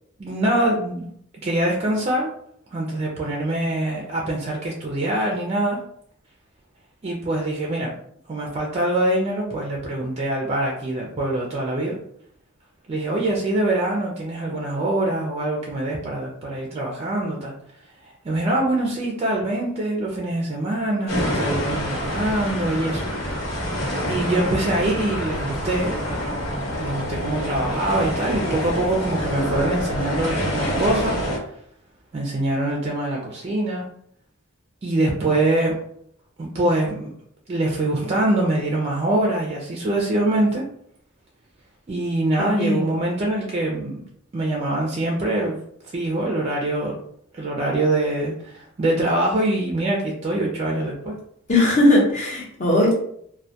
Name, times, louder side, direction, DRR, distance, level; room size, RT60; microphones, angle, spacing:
voice 1, 0.2-1.1 1.4-2.3 2.7-5.8 7.0-7.9 8.3-12.0 12.9-17.5 18.2-23.4 24.1-25.9 26.8-31.2 32.1-33.9 34.8-35.7 36.4-37.1 37.5-40.7 41.9-44.0 44.3-45.6 45.9-47.0 47.3-51.1, right 1 dB, 30° right, -1 dB, 0.4 m, -24 dB
sound 1, 21.1-31.4, equal, 85° left, 1.2 m, -27 dB
voice 2, 42.4-42.8 51.5-52.9, left 1 dB, 35° left, -3 dB, 0.8 m, -18 dB
2.2 x 2.1 x 2.7 m, 0.68 s
head